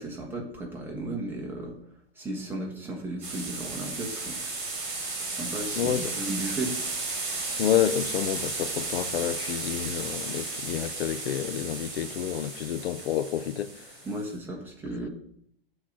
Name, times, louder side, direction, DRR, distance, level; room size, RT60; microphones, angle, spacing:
voice 1, 0.0-1.8 2.2-4.9 5.2-6.7 14.0-15.1, right 2 dB, 5° right, 1.5 m, -35 dB
sound 1, 3.2-14.3, right 3 dB, 30° right, 3.6 m, -34 dB
voice 2, 5.7-6.1 7.6-14.0, left 10 dB, 75° left, 0.7 m, -29 dB
8.7 x 4.1 x 6.2 m
hypercardioid pair, 155°, 31 cm